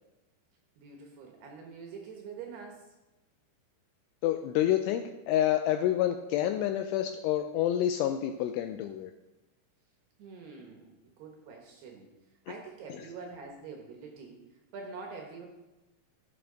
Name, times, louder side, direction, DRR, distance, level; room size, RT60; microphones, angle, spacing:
voice 1, 0.8-2.9 10.2-12.1 12.5-14.4 14.7-15.5, right 5 dB, 70° right, 1 dB, 2.8 m, -45 dB
voice 2, 4.2-9.1, left 11 dB, 85° left, 7 dB, 2.8 m, -28 dB
15.0 x 8.1 x 3.9 m, 1.0 s
omnidirectional pair, 5.9 m